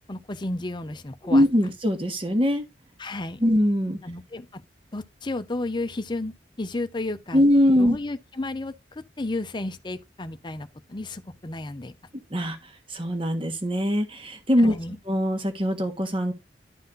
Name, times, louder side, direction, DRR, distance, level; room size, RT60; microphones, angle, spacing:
voice 1, 0.1-1.4 3.0-3.4 4.0-4.6 4.9-7.4 7.8-12.0 14.6-15.0, left 2 dB, 25° left, 0.7 m, -33 dB
voice 2, 1.2-2.6 3.4-4.0 7.3-8.0 12.3-12.6 12.9-14.8 15.1-16.3, equal, 30° right, 1.5 m, -22 dB
11.5 x 4.2 x 3.9 m
head